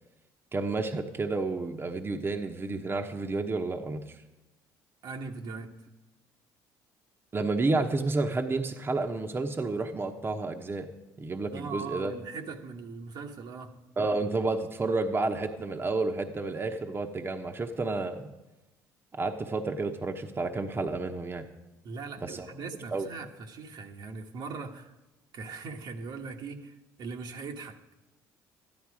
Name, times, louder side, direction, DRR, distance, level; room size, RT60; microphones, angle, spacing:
voice 1, 0.5-4.2 7.3-10.9 11.2-12.1 14.0-18.3 19.1-21.5 22.2-22.5 22.9-23.1, right 3 dB, 30° right, 4 dB, 1.0 m, -30 dB
voice 2, 5.0-5.7 11.5-13.7 21.8-24.9 25.3-27.8, right 4 dB, 65° right, 3 dB, 1.3 m, -40 dB
12.5 x 10.5 x 4.9 m, 1.0 s
supercardioid pair, 75°, 8 cm